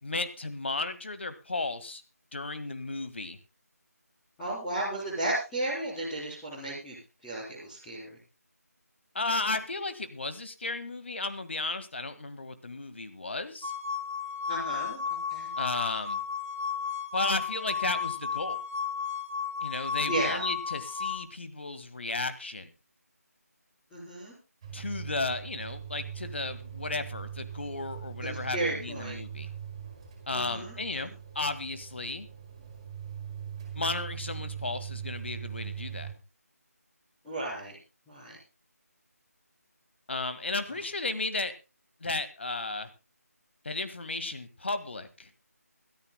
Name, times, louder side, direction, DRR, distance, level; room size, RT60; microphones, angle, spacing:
voice 1, 0.0-2.0 2.3-3.4 9.1-13.7 15.6-16.2 17.1-18.6 19.6-22.7 24.7-29.5 30.3-31.1 31.3-32.3 33.7-36.1 40.1-41.5 42.0-42.9 43.6-45.3, left 3 dB, 45° left, 11 dB, 1.7 m, -34 dB
voice 2, 4.4-7.0 7.2-8.2 14.5-15.0 15.3-15.5 20.1-20.4 23.9-24.3 28.2-29.2 30.3-30.7 31.0-31.1 37.2-37.8 38.1-38.4, right 2 dB, 10° left, -9 dB, 3.7 m, -34 dB
sound 1, 13.6-21.2, left 6 dB, 55° right, 2.0 m, -33 dB
sound 2, 24.6-36.1, right 8 dB, 15° right, 4.3 m, -41 dB
23.5 x 13.5 x 2.2 m, 0.29 s
figure-of-eight pair, 160°, 9 cm